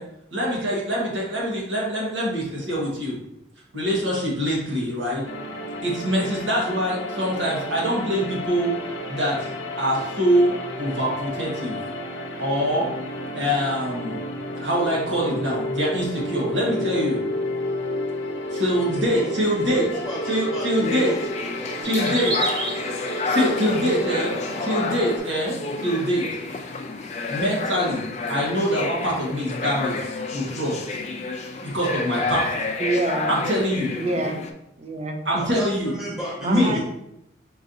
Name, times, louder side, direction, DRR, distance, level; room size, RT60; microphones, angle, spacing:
voice 1, 0.3-3.1 3.7-5.2 5.8-8.7 9.1-9.3 9.8-11.8 12.4-12.9 13.3-14.2 14.6-17.2 18.5-19.8 20.3-21.1 21.8-22.3 23.2-24.3 24.6-26.3 27.3-28.0 28.3-30.0 30.3-30.8 31.6-32.5 33.3-33.9 35.2-35.9 36.4-36.8, equal, 80° right, -5 dB, 1.5 m, -24 dB
sound 1, 5.2-25.2, left 1 dB, 90° left, 0.7 m, -32 dB
voice 2, 18.5-22.6 23.2-24.7 35.4-36.8, right 1 dB, 5° right, -8 dB, 1.5 m, -35 dB
sound 2, 20.8-34.5, left 3 dB, 35° left, 0.4 m, -30 dB
sound 3, 21.8-23.6 24.0-24.5 24.9-25.0 25.8-25.9 26.2-26.3 27.3-27.4, right 2 dB, 65° right, 1.7 m, -30 dB
voice 3, 32.8-33.3 34.0-34.4 34.8-35.2 36.4-36.8, right 2 dB, 35° right, 2 dB, 0.6 m, -26 dB
4.7 x 4.1 x 2.7 m, 0.82 s
head